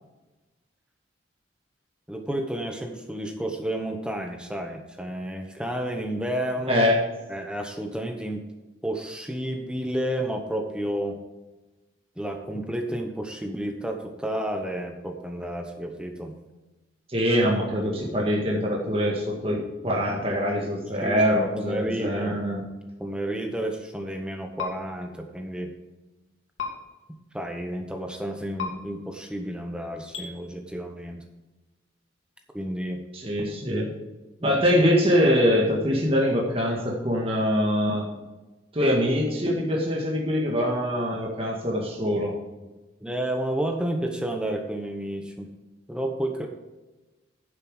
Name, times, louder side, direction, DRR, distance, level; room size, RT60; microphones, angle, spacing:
voice 1, 2.1-6.8 7.3-8.4 8.8-11.2 12.2-16.4 21.0-21.2 21.6-22.4 23.0-25.7 27.1-31.2 32.5-33.0 34.4-34.6 43.0-45.5 45.9-46.5, right 1 dB, 5° right, 4 dB, 0.9 m, -31 dB
voice 2, 17.1-22.6 33.1-33.9 34.4-38.0 38.7-42.4, equal, 30° right, -2 dB, 1.7 m, -23 dB
sound 1, 24.6-24.7 26.6-26.7 28.6-28.7 30.1-30.3, left 6 dB, 85° left, 2.1 m, -31 dB
10.0 x 7.5 x 4.8 m, 1.1 s
head